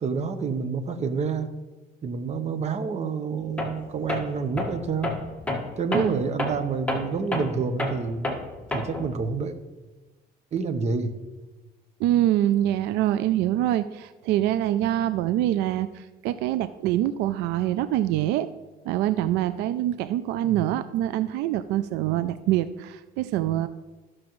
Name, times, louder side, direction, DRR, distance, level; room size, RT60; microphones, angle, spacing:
voice 1, 0.0-1.5 2.0-5.2 5.8-8.3 8.7-9.6 10.5-11.1 20.4-20.6, right 5 dB, 40° right, 8 dB, 0.9 m, -28 dB
Tools, 3.6-3.8 4.1-9.1, left 1 dB, 10° left, 1.5 m, -30 dB
voice 2, 12.0-18.5 18.9-23.7, right 13 dB, 90° right, 12 dB, 0.4 m, -25 dB
14.5 x 6.2 x 3.1 m, 1.2 s
cardioid pair, 110°, 17 cm